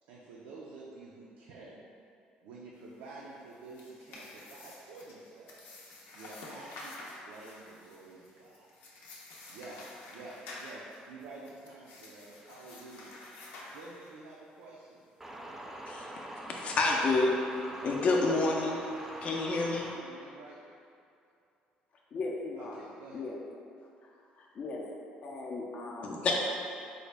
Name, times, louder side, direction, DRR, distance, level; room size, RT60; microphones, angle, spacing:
voice 1, 0.1-1.8 2.4-5.7 6.1-8.7 9.5-9.8 10.1-13.1 13.7-15.0 17.8-18.0 19.9-20.6 22.6-23.3, right 3 dB, 90° right, -5 dB, 0.4 m, -49 dB
sound 1, 3.5-14.4, left 2 dB, 85° left, 0.6 m, -49 dB
voice 2, 15.2-20.0, right 1 dB, 10° right, -1 dB, 0.4 m, -43 dB
voice 3, 16.6-17.4 17.8-18.8 19.2-19.9 22.1-22.8 23.1-23.4 24.4-24.8 25.2-26.3, left 3 dB, 45° left, -1 dB, 0.4 m, -30 dB
3.8 x 2.1 x 3.2 m, 2.5 s
cardioid pair, 115°, 3 cm